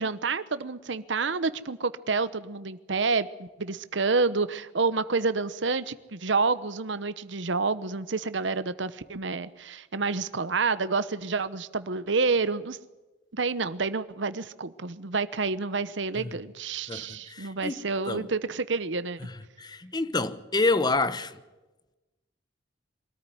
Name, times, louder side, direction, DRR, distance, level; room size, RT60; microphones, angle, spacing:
voice 1, 0.0-12.8 13.3-19.2, right 4 dB, 70° right, 1.0 m, -28 dB
voice 2, 16.9-18.3 19.2-21.3, left 3 dB, 20° left, 0.9 m, -28 dB
23.5 x 13.5 x 9.6 m
head